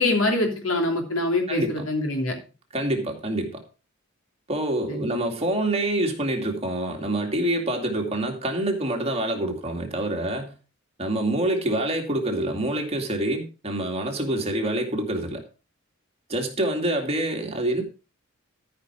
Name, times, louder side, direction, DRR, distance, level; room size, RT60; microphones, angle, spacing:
voice 1, 0.0-2.4 4.9-5.0, left 2 dB, 70° left, 3.0 m, -24 dB
voice 2, 2.7-3.6 4.5-10.5 11.0-15.4 16.3-17.8, right 1 dB, 30° right, 2.2 m, -26 dB
13.0 x 5.7 x 4.8 m
head